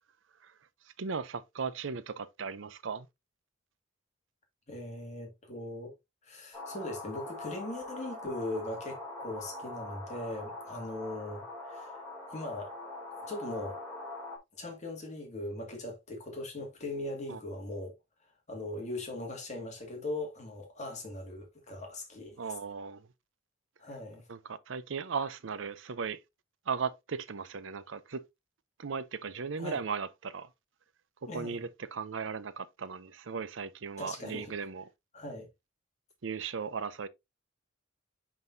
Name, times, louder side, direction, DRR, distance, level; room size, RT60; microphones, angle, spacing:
voice 1, 0.8-3.1 17.3-17.4 22.4-23.1 24.3-26.2 26.7-28.2 28.8-30.5 31.3-34.9 36.2-37.1, right 5 dB, 70° right, 0.6 m, -37 dB
voice 2, 4.7-5.9 6.2-12.0 12.3-12.7 13.2-13.8 14.5-18.0 18.5-22.4 23.8-24.3 29.6-29.8 31.3-31.5 34.0-34.5 35.1-35.5, left 2 dB, 35° left, 2.1 m, -39 dB
sound 1, 6.5-14.4, left 2 dB, 10° left, 2.7 m, -43 dB
10.5 x 3.9 x 2.6 m
head